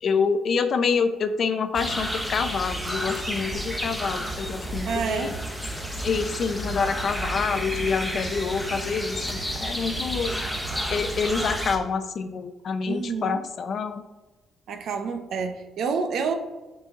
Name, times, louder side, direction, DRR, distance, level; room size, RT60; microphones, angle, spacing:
voice 1, 0.0-5.3 6.0-10.4 10.9-14.0, left 5 dB, 55° left, 9 dB, 0.6 m, -27 dB
sound 1, 1.7-11.8, equal, ahead, 1.1 m, -31 dB
voice 2, 4.9-5.3 12.9-13.4 14.7-16.4, right 5 dB, 70° right, 6 dB, 0.7 m, -28 dB
6.4 x 4.1 x 3.6 m, 1.1 s
cardioid pair, 90°, 0 cm